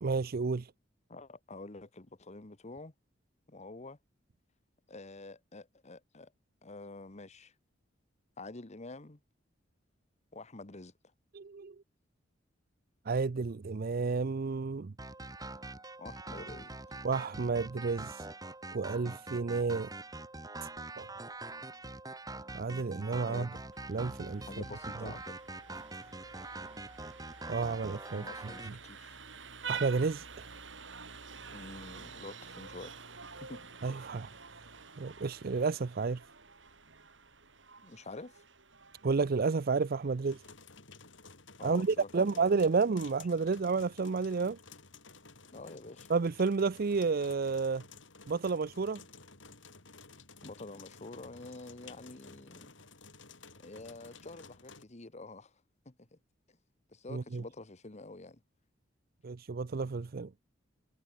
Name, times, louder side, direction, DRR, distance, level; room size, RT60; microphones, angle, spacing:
voice 1, 0.0-0.7 11.3-11.7 13.1-14.9 17.0-18.3 18.7-19.9 20.6-20.7 21.0-21.1 22.5-23.5 23.9-24.4 25.0-25.1 27.5-28.2 29.7-30.5 33.8-34.3 35.0-36.2 39.0-40.4 41.6-44.6 46.1-47.8 48.3-49.0 57.1-57.4 59.2-60.3, right 4 dB, 50° right, 0.5 m, -31 dB
voice 2, 1.1-2.9 3.5-4.0 4.9-6.3 6.6-7.5 8.4-9.2 10.3-10.9 16.0-16.7 23.3-23.6 24.5-25.4 28.1-29.2 31.5-33.0 33.4-33.6 37.8-38.4 41.6-42.7 45.5-46.1 50.4-52.7 53.6-55.5 55.8-56.2 56.9-58.4, left 2 dB, 35° left, 1.3 m, -47 dB
sound 1, 15.0-28.7, right 2 dB, 20° right, 3.7 m, -44 dB
Vehicle horn car horn honking, 23.7-40.5, right 5 dB, 75° right, 7.0 m, -48 dB
sound 2, 40.3-54.8, left 4 dB, 75° left, 6.2 m, -54 dB
head